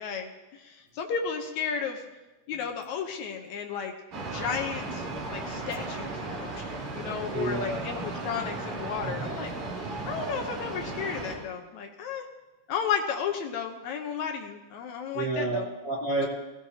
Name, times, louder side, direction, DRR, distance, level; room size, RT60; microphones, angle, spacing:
voice 1, 0.0-2.0 2.5-3.9 4.2-9.5 10.1-12.3 12.7-15.7, left 7 dB, 70° left, 4 dB, 2.0 m, -33 dB
sound 1, 4.1-11.4, right 2 dB, 50° right, 3.5 m, -35 dB
voice 2, 7.3-7.8 9.0-9.4 10.0-10.2 15.1-16.3, right 2 dB, 75° right, -4 dB, 0.8 m, -30 dB
17.5 x 16.0 x 2.8 m, 1.1 s
omnidirectional pair, 3.9 m